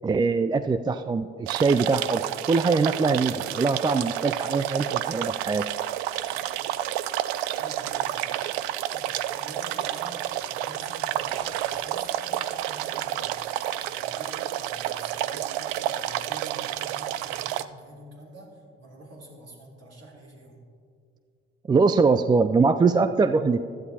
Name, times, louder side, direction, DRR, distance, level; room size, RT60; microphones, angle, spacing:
voice 1, 0.0-2.2 2.5-5.6 21.7-23.6, right 4 dB, 15° right, 11 dB, 0.3 m, -22 dB
sound 1, 1.5-17.6, right 13 dB, 75° right, 0.5 m, -30 dB
voice 2, 7.5-13.4 13.8-20.6, right 1 dB, 50° right, -2 dB, 3.4 m, -47 dB
15.5 x 12.5 x 2.8 m, 2.3 s
hypercardioid pair, 50°, 32 cm